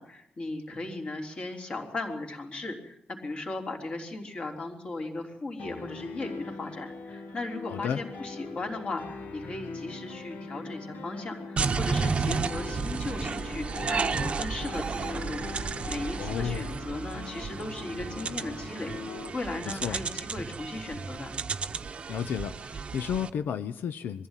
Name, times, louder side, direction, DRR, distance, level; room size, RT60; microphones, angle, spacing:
voice 1, 0.0-18.9 19.3-21.4, left 2 dB, 35° left, 3 dB, 3.5 m, -37 dB
Piano, 5.6-19.3, left 3 dB, 65° left, 2.3 m, -41 dB
voice 2, 7.6-8.0 16.2-16.7 19.7-20.0 22.1-24.3, left 8 dB, 85° left, 12 dB, 0.7 m, -32 dB
sound 1, 11.6-23.3, right 5 dB, 35° right, 0.9 m, -33 dB
23.0 x 15.0 x 9.1 m, 0.82 s
wide cardioid pair, 175°, 3 cm